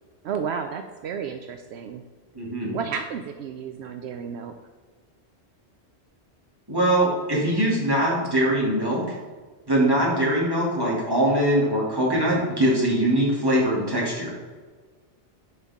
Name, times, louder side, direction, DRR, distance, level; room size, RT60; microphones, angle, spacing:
voice 1, 0.2-2.0 2.7-4.5, right 6 dB, 75° right, 6 dB, 0.8 m, -32 dB
voice 2, 2.3-2.7 6.7-9.2 9.7-14.3, right 1 dB, 20° right, -6 dB, 2.7 m, -22 dB
11.0 x 5.4 x 3.6 m, 1.5 s
omnidirectional pair, 1.1 m